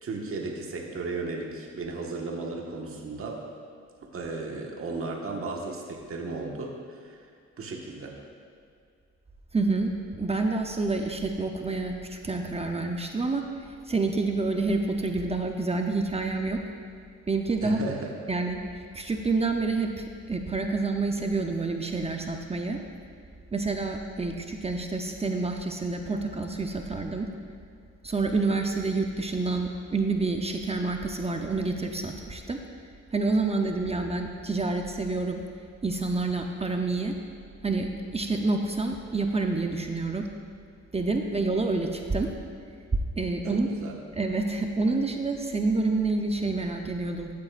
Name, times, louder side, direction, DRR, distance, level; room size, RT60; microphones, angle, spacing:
voice 1, 0.0-3.4 4.0-7.2 7.6-8.1 17.6-18.1 43.4-43.9, right 3 dB, 45° right, 0 dB, 1.5 m, -35 dB
voice 2, 9.5-13.4 13.9-16.6 17.3-17.8 18.3-18.6 18.9-22.8 23.5-27.3 28.0-32.6 33.1-35.4 35.8-37.1 37.6-40.2 40.9-42.3 43.2-43.7 44.1-47.3, right 3 dB, 20° right, 3 dB, 0.7 m, -28 dB
14.0 x 8.5 x 2.5 m, 2.3 s
cardioid pair, 90°, 30 cm